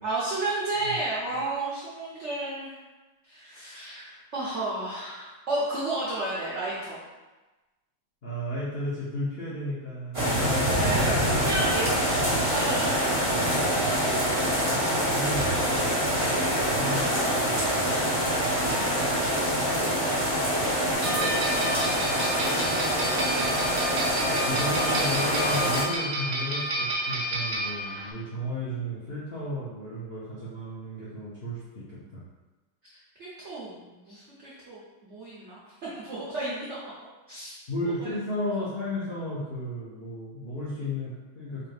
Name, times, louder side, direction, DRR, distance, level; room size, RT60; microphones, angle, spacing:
voice 1, 0.0-2.8 3.2-7.0 10.7-13.4 16.8-17.3 17.9-20.3 21.1-21.8 24.5-25.4 32.9-35.6 35.9-36.8 37.3-37.6 37.8-38.1, right 2 dB, 90° right, -8 dB, 0.6 m, -33 dB
voice 2, 8.2-10.4 11.1-11.6 14.7-15.5 16.7-17.0 17.4-17.9 24.4-31.6 31.9-32.2 37.7-41.7, left 1 dB, 75° left, -9 dB, 0.5 m, -34 dB
sound 1, 10.1-25.8, equal, 25° right, 0.9 m, -25 dB
sound 2, 21.0-28.1, right 1 dB, 65° right, 1.0 m, -30 dB
4.7 x 2.4 x 3.2 m, 1.2 s
omnidirectional pair, 2.3 m